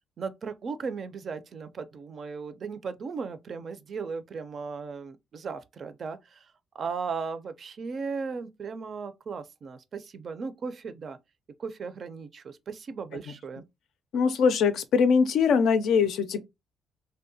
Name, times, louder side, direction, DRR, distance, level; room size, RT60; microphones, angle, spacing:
voice 1, 0.2-11.2 11.6-13.6, right 5 dB, 50° right, 0.4 m, -36 dB
voice 2, 14.1-16.4, left 6 dB, 75° left, 0.4 m, -22 dB
2.7 x 2.1 x 2.6 m
cardioid pair, 90°, 0 cm